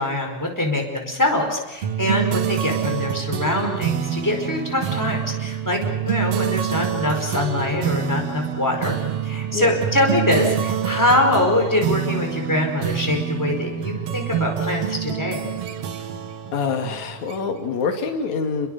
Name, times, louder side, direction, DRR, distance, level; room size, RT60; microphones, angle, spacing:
voice 1, 0.0-9.0 9.2-15.5, left 1 dB, 5° left, 2 dB, 4.8 m, -23 dB
sound 1, 1.8-17.7, right 9 dB, 60° right, 2.3 m, -26 dB
voice 2, 16.5-18.7, left 5 dB, 75° left, 4 dB, 3.6 m, -25 dB
30.0 x 21.5 x 6.7 m, 1.1 s
omnidirectional pair, 3.3 m